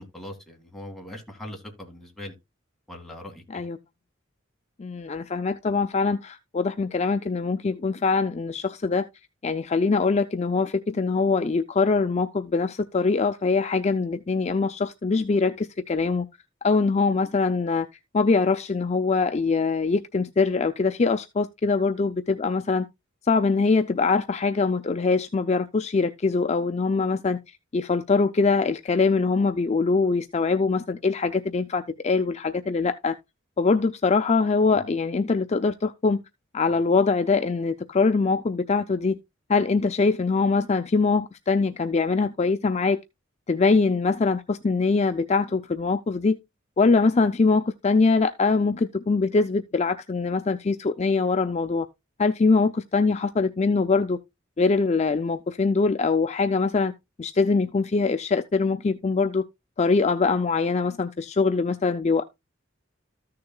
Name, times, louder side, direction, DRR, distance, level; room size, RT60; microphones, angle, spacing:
voice 1, 0.0-2.4 2.9-3.6, left 1 dB, ahead, 2.2 m, -40 dB
voice 2, 4.8-9.1 9.4-16.3 16.6-17.9 18.1-22.9 23.2-33.1 33.6-36.2 36.5-39.2 39.5-43.0 43.5-46.4 46.8-51.9 52.2-54.2 54.6-56.9 57.2-59.4 59.8-62.2, left 4 dB, 35° left, 0.4 m, -23 dB
14.0 x 6.6 x 2.3 m
head